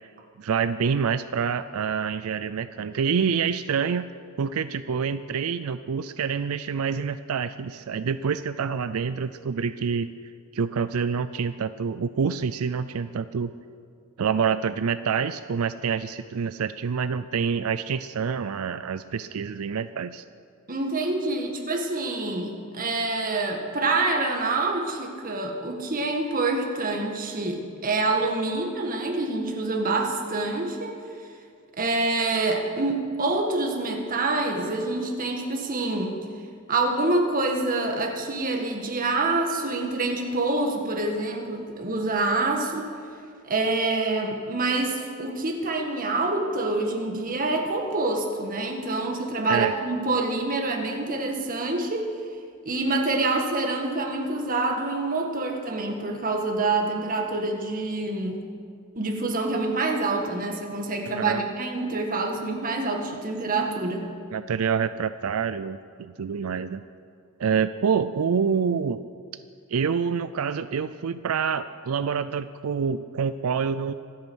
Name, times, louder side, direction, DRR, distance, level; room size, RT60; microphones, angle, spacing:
voice 1, 0.4-4.1 4.4-10.1 10.5-13.5 14.2-20.2 49.5-49.7 61.1-61.4 64.3-66.8 67.4-69.0 69.7-73.9, right 6 dB, 90° right, 12 dB, 0.4 m, -27 dB
voice 2, 20.7-31.0 31.8-36.2 36.7-42.9 43.4-52.1 52.6-58.5 59.0-64.1, right 2 dB, 40° right, 3 dB, 1.8 m, -26 dB
24.5 x 8.7 x 6.3 m, 2.3 s
head